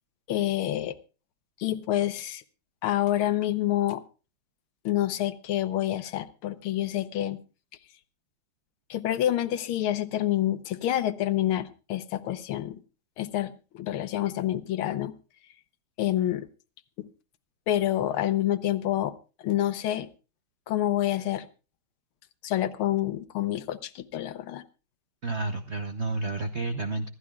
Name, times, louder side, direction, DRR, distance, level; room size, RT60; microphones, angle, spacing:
voice 1, 0.3-0.9 1.6-2.4 2.8-4.0 4.8-7.4 8.9-12.8 13.2-15.1 16.0-16.5 17.0-17.1 17.7-20.1 20.7-21.5 22.4-24.6, left 13 dB, 80° left, 12 dB, 1.7 m, -28 dB
voice 2, 25.2-27.1, right 3 dB, 65° right, 7 dB, 0.6 m, -30 dB
25.5 x 13.0 x 2.3 m, 0.33 s
omnidirectional pair, 2.3 m